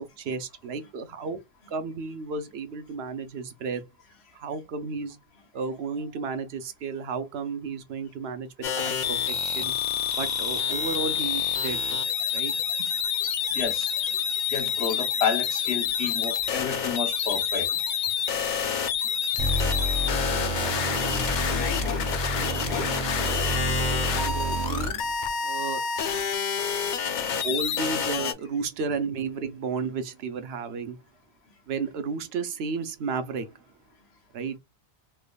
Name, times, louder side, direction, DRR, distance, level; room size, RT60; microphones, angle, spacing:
voice 1, 0.0-1.4 1.7-3.8 4.3-5.2 5.5-9.2 9.4-9.7 10.2-12.5 12.8-12.9 24.1-25.0 25.4-25.8 27.4-31.0 31.7-33.6 34.3-34.6, right 4 dB, 75° right, 0.9 m, -33 dB
sound 1, 8.6-28.3, left 7 dB, 55° left, 0.6 m, -28 dB
voice 2, 13.5-13.9 14.5-17.7 20.0-20.1 20.8-21.0 21.4-21.7 22.1-22.2 22.9-23.0, left 6 dB, 80° left, 1.2 m, -31 dB
sound 2, 19.4-25.1, right 1 dB, 40° right, 0.8 m, -29 dB
3.3 x 3.0 x 2.3 m
omnidirectional pair, 1.1 m